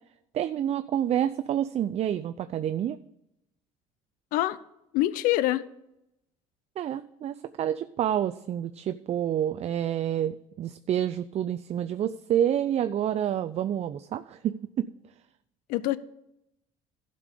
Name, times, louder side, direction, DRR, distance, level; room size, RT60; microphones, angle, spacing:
voice 1, 0.3-3.0 6.8-14.9, right 10 dB, 45° right, 0.5 m, -28 dB
voice 2, 4.9-5.7 15.7-16.0, left 15 dB, 75° left, 0.6 m, -25 dB
12.0 x 5.3 x 6.7 m
supercardioid pair, 75°, 15 cm